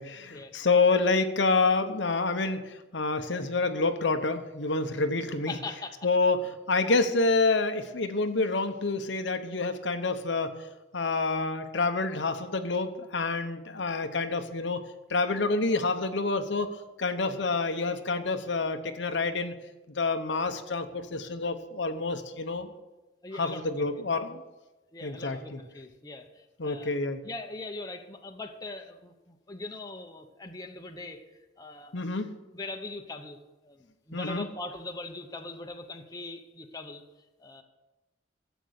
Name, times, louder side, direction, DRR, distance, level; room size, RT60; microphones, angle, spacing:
voice 1, 0.0-5.5 6.0-6.4 6.7-10.5 10.9-14.8 15.1-16.7 17.0-19.5 20.0-22.7 23.3-24.4 25.0-25.6 26.6-27.2 31.9-32.3 34.1-34.5, left 3 dB, 70° left, 7 dB, 1.0 m, -28 dB
voice 2, 5.5-6.0 23.2-23.9 24.9-26.9 27.2-31.2 31.6-32.1 32.5-33.4 33.6-37.0 37.4-37.6, left 2 dB, 20° left, 4 dB, 0.9 m, -41 dB
13.5 x 8.2 x 6.5 m, 1.1 s
head